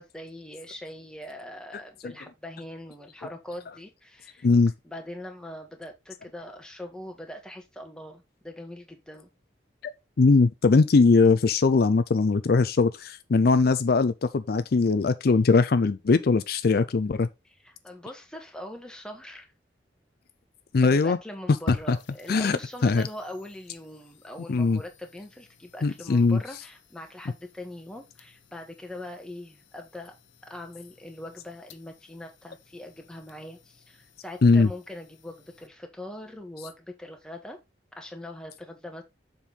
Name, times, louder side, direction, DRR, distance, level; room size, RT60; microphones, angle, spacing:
voice 1, 0.0-4.5 4.8-9.3 17.6-19.5 20.8-30.2 30.5-37.6 38.0-39.0, left 1 dB, 5° left, 1.5 m, -42 dB
voice 2, 10.2-17.3 20.7-21.2 21.9-22.0 22.3-23.1 24.5-24.8 25.8-26.4 34.4-34.7, left 4 dB, 55° left, 0.4 m, -21 dB
sound 1, 21.7-35.7, left 2 dB, 90° left, 1.0 m, -46 dB
7.2 x 5.4 x 4.0 m
head